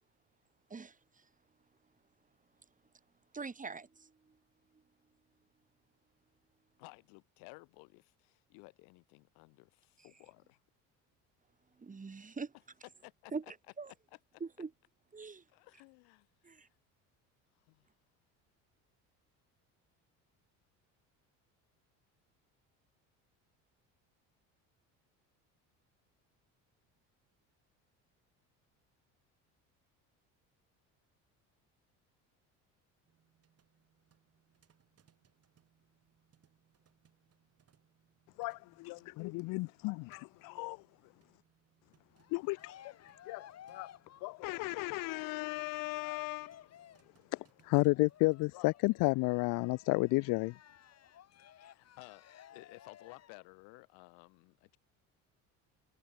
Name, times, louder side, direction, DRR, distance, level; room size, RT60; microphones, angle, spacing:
voice 1, 0.7-1.3 3.3-4.4 4.7-4.8 11.8-12.5 13.3-13.9 14.4-14.7 15.1-15.4 16.4-16.7, right 4 dB, 20° right, 2.8 m, -43 dB
voice 2, 6.8-10.6 13.0-13.3 14.1-14.4 15.5-16.7 17.7-17.9 51.6-52.2 52.5-54.8, left 31 dB, 80° left, 6.0 m, -56 dB
sound 1, 33.1-48.6, right 8 dB, 40° right, 7.6 m, -73 dB
voice 3, 38.4-40.8 42.3-42.8 43.3-43.9 44.2-46.6 47.3-50.5, left 24 dB, 65° left, 0.5 m, -33 dB
Cheering, 42.1-47.2 47.9-53.5, left 10 dB, 45° left, 2.1 m, -57 dB
supercardioid pair, 95°, 36 cm